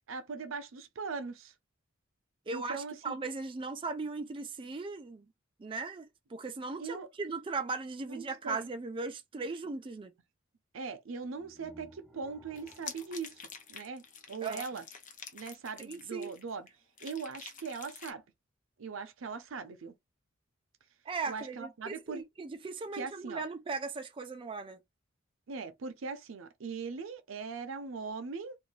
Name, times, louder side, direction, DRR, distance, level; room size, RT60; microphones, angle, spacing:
voice 1, 0.1-1.5 2.5-3.2 6.8-7.1 8.1-8.6 10.7-14.9 15.3-16.7 17.0-18.2 18.8-19.9 21.3-22.2 22.9-23.4 25.5-28.6, right 5 dB, 75° right, 0.5 m, -40 dB
voice 2, 2.5-5.3 5.6-10.1 14.4-14.6 15.9-16.3 21.1-24.8, right 4 dB, 25° right, 0.4 m, -38 dB
sound 1, 11.2-14.4, right 1 dB, 5° right, 0.8 m, -57 dB
sound 2, 12.6-16.7 17.0-18.1, left 6 dB, 40° left, 0.6 m, -47 dB
2.6 x 2.3 x 3.1 m
head